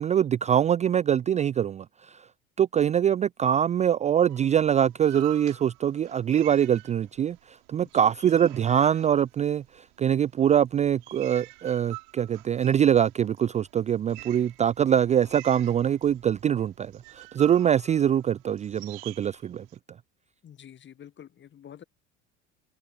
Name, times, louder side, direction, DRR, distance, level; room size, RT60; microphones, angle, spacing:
voice 1, 0.0-2.2 2.6-19.6, right 9 dB, 20° right, 0.5 m, -24 dB
sound 1, 4.3-7.4 7.6-9.9 10.5-19.8, right 32 dB, 55° right, 5.6 m, -46 dB
voice 2, 7.8-8.1 20.4-21.8, left 9 dB, 30° left, 1.6 m, -48 dB
figure-of-eight pair, 65°, 38 cm